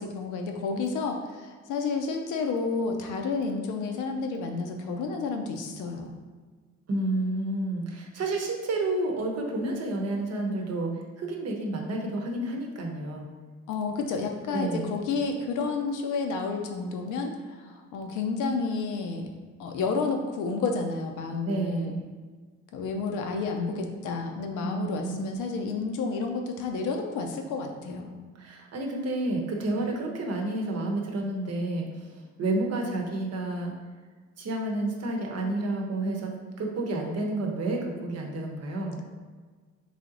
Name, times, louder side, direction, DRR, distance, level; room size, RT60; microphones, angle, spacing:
voice 1, 0.0-6.1 13.7-19.3 19.6-21.9 22.7-28.1, left 4 dB, 85° left, 3 dB, 0.6 m, -30 dB
voice 2, 6.9-13.3 14.5-14.9 21.4-22.0 24.6-25.4 28.3-33.7 34.4-36.3 36.6-39.0, right 2 dB, 55° right, 1 dB, 0.8 m, -30 dB
3.4 x 2.8 x 3.8 m, 1.4 s
cardioid pair, 90°, 30 cm